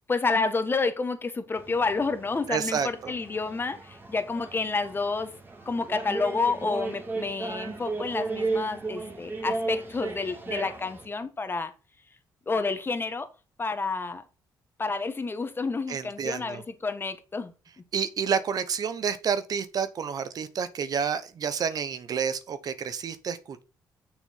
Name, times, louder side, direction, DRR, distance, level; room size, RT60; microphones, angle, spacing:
voice 1, 0.1-5.3 5.6-11.7 12.5-13.3 13.6-14.2 14.8-17.5, left 4 dB, 30° left, 1.4 m, -29 dB
sound 1, 1.5-11.1, right 3 dB, 30° right, 2.4 m, -35 dB
voice 2, 2.5-3.1 15.9-16.6 17.9-23.6, right 7 dB, 55° right, 1.0 m, -29 dB
6.6 x 6.1 x 5.6 m
cardioid pair, 80°, 8 cm